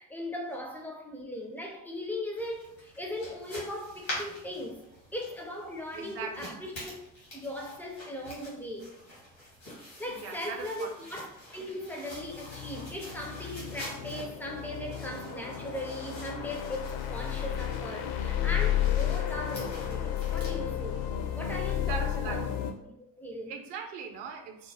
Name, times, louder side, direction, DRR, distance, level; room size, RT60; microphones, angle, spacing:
voice 1, 0.0-4.8 5.1-6.9 7.3-9.0 10.0-21.0 21.3-22.5 22.8-23.6, left 1 dB, 5° left, 0.4 m, -38 dB
sound 1, 2.4-20.6, left 1 dB, 90° left, 1.2 m, -46 dB
voice 2, 5.9-6.5 8.8-8.9 10.1-10.9 21.8-22.4 23.5-24.7, right 6 dB, 55° right, 0.6 m, -40 dB
sound 2, 12.1-22.7, left 10 dB, 60° left, 0.5 m, -32 dB
2.5 x 2.1 x 3.2 m
figure-of-eight pair, 45°, 49 cm